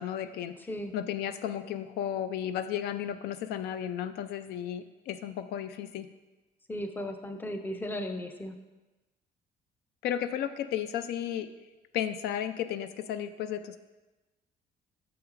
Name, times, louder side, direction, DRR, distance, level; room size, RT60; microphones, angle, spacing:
voice 1, 0.0-0.6 0.9-6.1 10.0-11.5 11.9-13.8, left 10 dB, 75° left, 11 dB, 0.4 m, -33 dB
voice 2, 6.7-8.6, left 1 dB, 10° left, 6 dB, 0.5 m, -36 dB
7.3 x 5.8 x 2.5 m, 1.1 s
cardioid pair, 110°, 17 cm